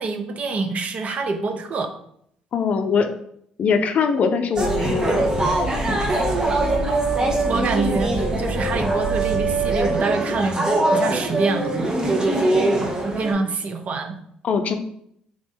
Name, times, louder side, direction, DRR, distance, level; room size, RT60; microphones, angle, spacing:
voice 1, 0.0-1.9 7.5-11.9 13.0-14.2, right 3 dB, 50° right, 6 dB, 0.6 m, -26 dB
voice 2, 2.5-3.1 3.6-5.3 14.4-14.7, left 6 dB, 55° left, 7 dB, 0.5 m, -21 dB
sound 1, 4.6-13.3, right 2 dB, 25° right, 0.9 m, -22 dB
3.6 x 2.5 x 3.6 m, 0.69 s
hypercardioid pair, 55°, 3 cm